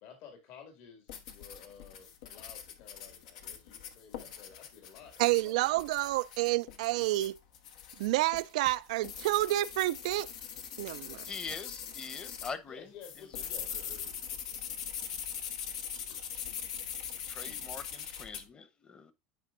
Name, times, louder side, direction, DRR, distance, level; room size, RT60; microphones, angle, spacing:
voice 1, 0.0-5.5 12.7-14.8 16.1-16.3, left 7 dB, 65° left, 2.1 m, -53 dB
sound 1, 1.1-12.5 13.0-18.4, left 8 dB, 85° left, 1.1 m, -42 dB
voice 2, 5.2-7.4 8.0-10.3 10.8-11.3, right 17 dB, 85° right, 0.3 m, -29 dB
voice 3, 11.3-12.9 13.4-13.5 16.3-16.5 17.3-19.1, left 5 dB, 25° left, 0.9 m, -43 dB
9.3 x 5.2 x 2.5 m
supercardioid pair, 125°, 4 cm